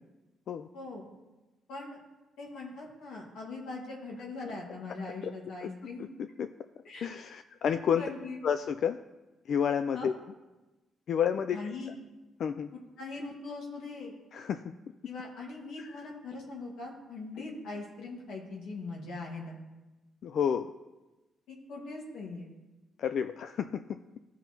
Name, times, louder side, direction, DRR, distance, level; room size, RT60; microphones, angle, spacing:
voice 1, 0.7-1.0 1.7-2.0 2.4-6.1 6.8-7.1 8.0-8.4 9.9-10.1 11.5-11.9 12.7-14.1 15.1-19.6 21.5-22.5, left 3 dB, 80° left, -2 dB, 1.8 m, -41 dB
voice 2, 7.0-8.0 8.4-9.0 9.5-10.1 11.1-11.6 12.4-12.7 14.3-14.6 15.8-15.9 20.2-20.7 23.0-23.8, left 8 dB, 65° left, 9 dB, 0.3 m, -30 dB
14.0 x 5.4 x 3.0 m, 1.1 s
cardioid pair, 90°, 0 cm